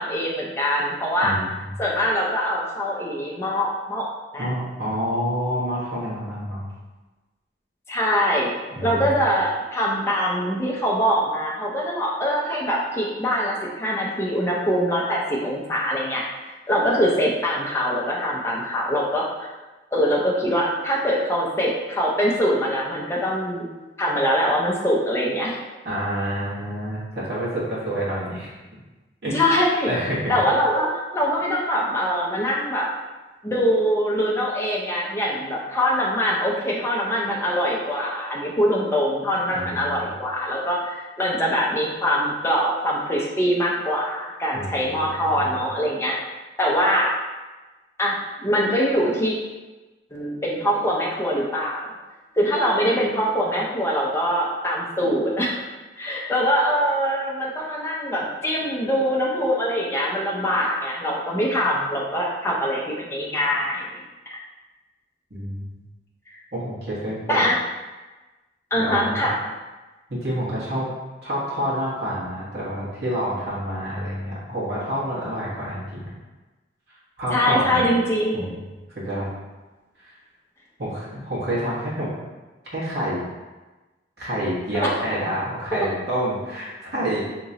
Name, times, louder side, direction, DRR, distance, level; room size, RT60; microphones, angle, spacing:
voice 1, 0.0-1.3 1.8-4.1 4.3-4.5 7.9-8.5 8.8-16.2 16.7-19.5 19.9-23.7 24.0-25.6 29.3-29.9 30.3-30.9 31.1-32.9 33.4-46.2 46.6-47.1 48.0-49.3 50.1-51.9 52.4-55.6 56.0-64.0 64.3-64.4 67.3-67.5 68.7-69.4 77.3-78.6, equal, 15° left, -4 dB, 0.5 m, -23 dB
voice 2, 4.4-6.7 8.7-9.0 25.8-28.5 29.2-29.4 29.8-30.3 39.5-40.0 44.5-45.5 65.3-65.8 66.5-67.4 68.7-69.3 70.1-70.9 71.2-76.1 76.9-77.8 78.3-78.6 78.9-79.3 80.0-80.1 80.8-82.1 82.7-83.2 84.2-87.2, equal, 65° right, -8 dB, 1.3 m, -28 dB
3.7 x 2.9 x 2.8 m, 1.2 s
head